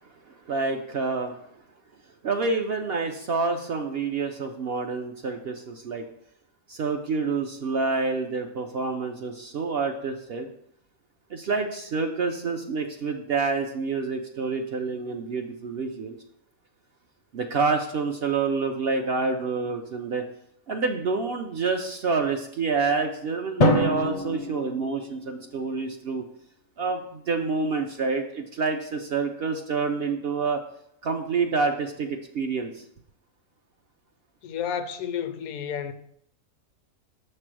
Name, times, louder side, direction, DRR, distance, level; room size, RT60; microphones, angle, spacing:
voice 1, 0.3-1.4 2.2-6.1 6.7-10.5 11.3-16.2 17.3-20.2 20.7-26.2 26.8-30.6 31.0-32.8, right 4 dB, 60° right, 0.6 m, -28 dB
Drum, 23.6-25.7, left 1 dB, 50° left, 0.5 m, -25 dB
voice 2, 34.4-35.9, left 8 dB, 85° left, 1.1 m, -31 dB
6.7 x 3.3 x 6.0 m
omnidirectional pair, 1.5 m